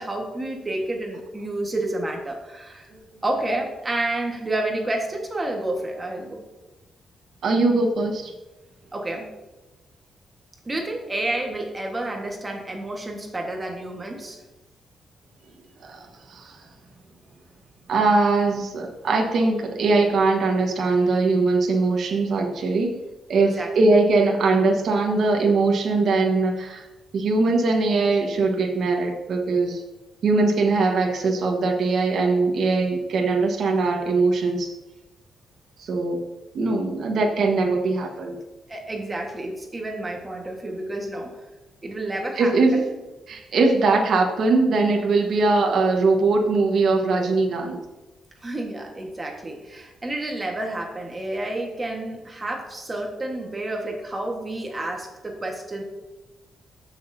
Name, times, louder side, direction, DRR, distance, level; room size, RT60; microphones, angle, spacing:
voice 1, 0.0-2.9 3.2-6.4 8.9-9.3 10.6-14.4 23.3-23.7 38.7-41.4 41.8-42.8 48.4-55.8, right 1 dB, 20° right, 2 dB, 1.4 m, -30 dB
voice 2, 7.4-8.3 15.8-16.6 17.9-22.9 23.3-26.9 27.1-29.8 30.2-34.7 35.8-36.2 36.5-38.4 42.4-42.9 43.3-47.8, right 3 dB, 55° right, 2 dB, 1.3 m, -21 dB
14.0 x 6.3 x 2.7 m, 1.1 s
wide cardioid pair, 165°, 0 cm